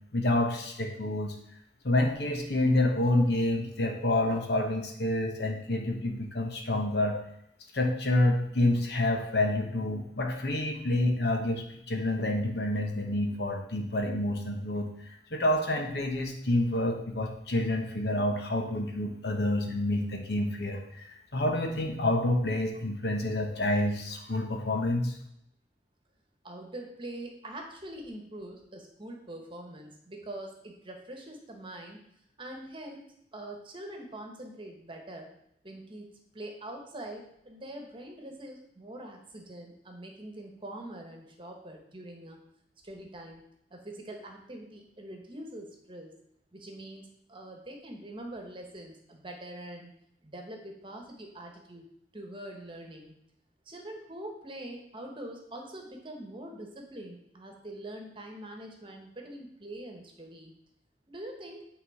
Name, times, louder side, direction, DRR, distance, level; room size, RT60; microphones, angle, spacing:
voice 1, 0.1-1.3 1.8-7.2 7.7-25.2, left 1 dB, 65° left, 3 dB, 1.1 m, -28 dB
voice 2, 26.4-32.0 32.4-33.0 33.3-35.3 35.6-42.4 42.8-43.4 43.7-46.1 46.5-49.9 50.2-51.9 52.1-53.1 53.6-60.5 61.1-61.7, right 1 dB, 30° right, 2 dB, 1.2 m, -44 dB
8.8 x 3.8 x 4.9 m, 0.75 s
head